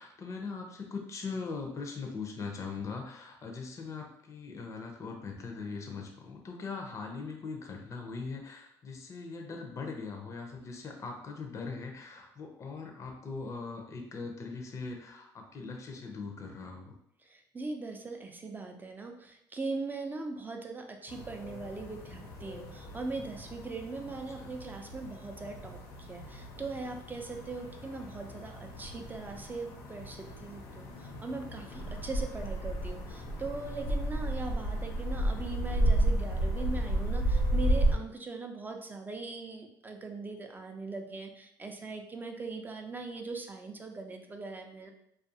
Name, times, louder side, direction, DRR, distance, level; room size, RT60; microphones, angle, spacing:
voice 1, 0.0-16.9 24.4-24.5 31.7-32.1, left 4 dB, 35° left, 2 dB, 0.5 m, -40 dB
voice 2, 17.2-44.9, right 3 dB, 20° right, 3 dB, 0.4 m, -40 dB
sound 1, 21.1-38.0, right 1 dB, 85° left, 0.7 m, -33 dB
2.4 x 2.3 x 2.7 m, 0.77 s
supercardioid pair, 85°, 8 cm